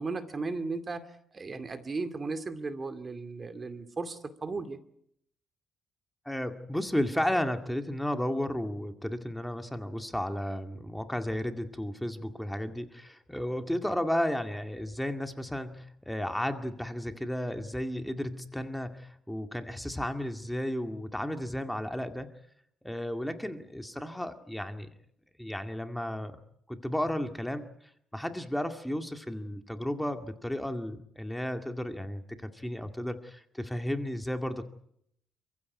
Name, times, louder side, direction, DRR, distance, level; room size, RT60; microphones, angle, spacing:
voice 1, 0.0-4.8, right 3 dB, 35° right, 10 dB, 2.3 m, -36 dB
voice 2, 6.3-22.3 22.8-24.9 25.4-26.4 26.7-27.7 28.1-34.6, left 1 dB, 5° left, 6 dB, 2.1 m, -33 dB
28.5 x 15.5 x 9.7 m, 0.73 s
cardioid pair, 90°, 0 cm